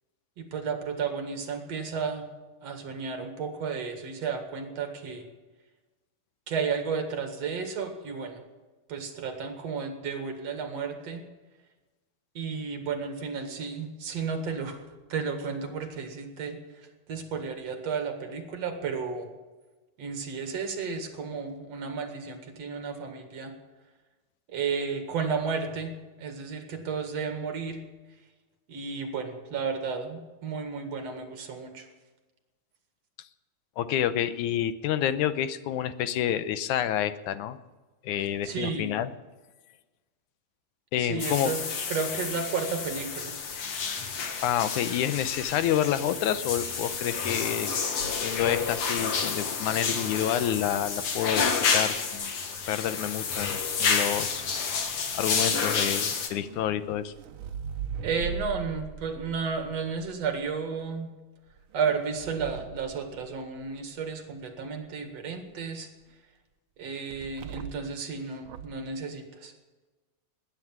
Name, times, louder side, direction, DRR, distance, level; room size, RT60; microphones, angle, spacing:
voice 1, 0.4-2.2 2.6-5.2 6.5-8.4 8.9-11.2 12.3-14.8 15.1-19.3 20.0-23.5 24.5-25.9 26.2-27.8 28.7-31.9 38.4-38.9 41.0-43.3 58.0-61.1 61.7-65.9 66.8-69.5, right 5 dB, 60° right, 6 dB, 2.9 m, -33 dB
voice 2, 33.8-37.6 38.0-39.1 40.9-41.5 44.4-47.7 48.2-52.3 52.7-54.4 55.1-57.1, left 10 dB, 85° left, 12 dB, 2.3 m, -28 dB
sound 1, 41.2-56.3, left 5 dB, 50° left, 2.2 m, -30 dB
sound 2, 56.4-60.5 61.5-63.8 67.1-68.0 68.4-68.9, right 7 dB, 85° right, 1.1 m, -40 dB
19.0 x 9.8 x 7.4 m, 1.2 s
omnidirectional pair, 3.4 m